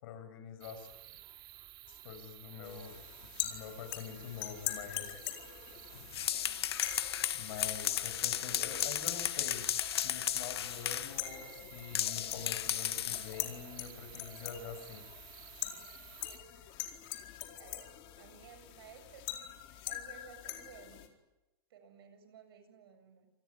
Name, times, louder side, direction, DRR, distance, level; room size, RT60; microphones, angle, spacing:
voice 1, 0.0-0.9 1.9-3.0 3.4-5.1 7.3-15.0, left 7 dB, 65° left, 8 dB, 6.6 m, -46 dB
sound 1, 0.6-16.4, right 14 dB, 35° right, 2.3 m, -53 dB
sound 2, 2.6-21.1, left 13 dB, 45° left, 4.3 m, -44 dB
sound 3, 6.0-11.2 11.9-13.3, left 11 dB, 80° left, 1.1 m, -34 dB
voice 2, 6.1-6.6 17.5-21.1 21.7-23.3, right 6 dB, 75° right, 8 dB, 7.5 m, -56 dB
27.5 x 19.5 x 9.7 m, 1.0 s
hypercardioid pair, 125°, 13 cm